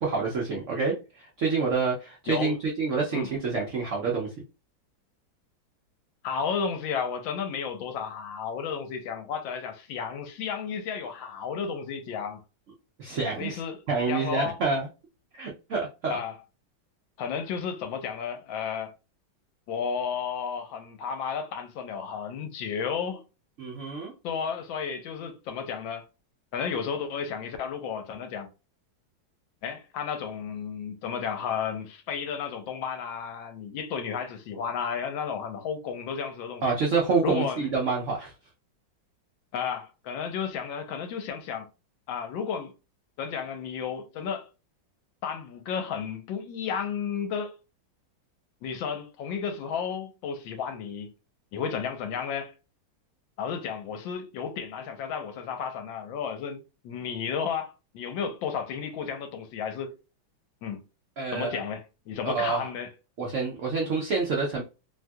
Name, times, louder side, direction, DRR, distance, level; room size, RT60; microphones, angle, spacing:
voice 1, 0.0-4.3 13.0-13.6 13.9-14.9 15.3-16.2 23.6-24.1 36.6-38.3 61.2-61.6 62.2-62.7 63.2-64.6, right 4 dB, 85° right, 0.6 m, -27 dB
voice 2, 2.3-2.6 3.1-3.3 6.2-12.4 13.4-13.8 14.1-14.6 16.1-16.4 17.2-18.9 19.7-23.2 24.2-26.0 26.5-28.5 29.6-36.7 37.2-37.7 39.5-41.7 42.1-42.7 43.2-44.5 45.2-47.6 48.6-51.1 51.5-52.5 53.4-59.9 60.6-60.8 61.3-62.9, left 6 dB, 75° left, 1.3 m, -33 dB
3.2 x 2.3 x 2.6 m
omnidirectional pair, 2.2 m